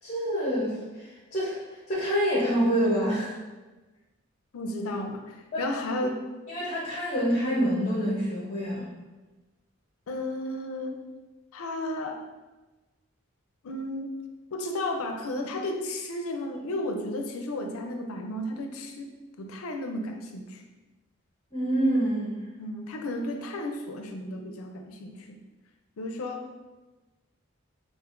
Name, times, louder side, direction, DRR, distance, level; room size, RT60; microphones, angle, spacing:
voice 1, 0.0-3.4 5.5-5.6 6.5-8.9 21.5-22.4, equal, 30° left, -6 dB, 0.8 m, -27 dB
voice 2, 4.5-6.2 10.1-11.0 11.5-12.2 13.6-14.1 14.5-19.1 19.4-20.6 22.6-25.4 26.0-26.5, left 1 dB, 75° left, 5 dB, 0.4 m, -33 dB
5.4 x 2.4 x 2.5 m, 1.2 s
head